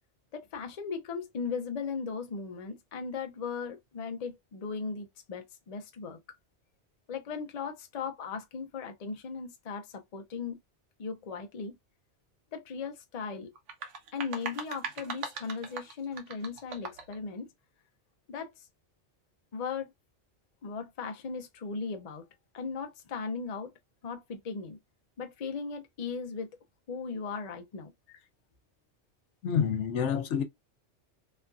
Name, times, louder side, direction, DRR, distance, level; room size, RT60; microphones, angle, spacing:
voice 1, 0.3-6.2 7.1-10.6 11.0-11.8 12.5-13.5 14.1-17.5 18.3-18.5 19.5-19.9 20.6-22.3 22.5-23.7 24.0-24.8 25.2-26.6 26.9-27.9, left 5 dB, 45° left, 0.6 m, -37 dB
sound 1, 13.5-17.2, right 5 dB, 85° right, 1.1 m, -40 dB
voice 2, 29.4-30.4, left 8 dB, 75° left, 0.9 m, -28 dB
3.1 x 2.5 x 2.2 m
omnidirectional pair, 1.2 m